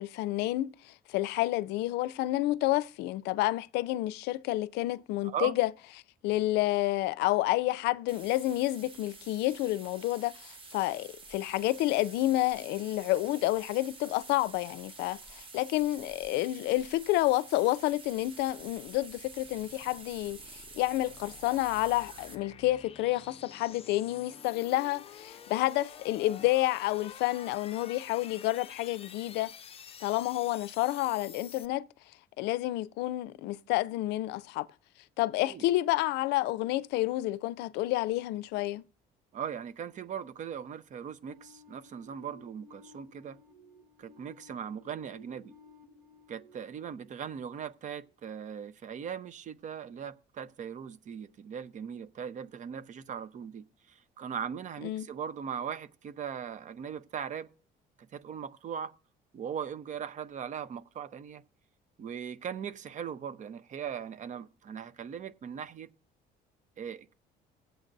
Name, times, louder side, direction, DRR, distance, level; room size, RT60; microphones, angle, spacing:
voice 1, 0.0-5.7 6.2-29.5 30.0-31.9 32.4-34.7 35.2-38.8 54.8-55.1, left 17 dB, 90° left, 0.4 m, -29 dB
voice 2, 5.2-5.6 35.4-35.6 39.3-43.4 44.0-45.5 46.3-57.5 58.0-58.9 59.3-61.4 62.0-65.9 66.8-67.1, right 8 dB, 45° right, 0.6 m, -39 dB
sound 1, 8.1-22.3, right 4 dB, 30° right, 1.1 m, -49 dB
sound 2, 17.9-31.7, left 8 dB, 35° left, 0.6 m, -50 dB
sound 3, 41.3-48.0, left 3 dB, 60° right, 1.1 m, -57 dB
19.0 x 7.9 x 2.6 m
cardioid pair, 110°, 17 cm